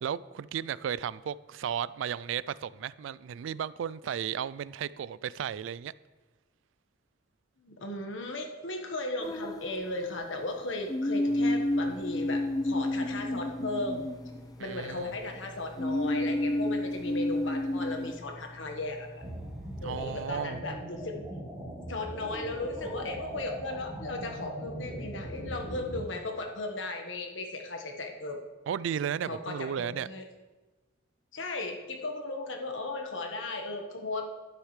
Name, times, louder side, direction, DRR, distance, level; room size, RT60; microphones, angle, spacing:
voice 1, 0.0-5.9 14.6-15.1 19.8-20.6 28.7-30.1, right 8 dB, 80° right, 18 dB, 0.3 m, -34 dB
voice 2, 7.6-14.0 14.6-19.2 19.8-21.2 21.9-28.4 29.3-30.2 31.3-34.3, left 2 dB, 80° left, 3 dB, 1.4 m, -36 dB
sound 1, 9.2-10.3 10.9-14.8 15.8-18.2, left 1 dB, 20° left, 0.4 m, -30 dB
Engine, 11.3-20.3, left 1 dB, 5° right, 1.1 m, -50 dB
sound 2, 19.2-26.0, right 1 dB, 20° right, 3.5 m, -40 dB
11.5 x 9.6 x 3.2 m, 1.2 s
head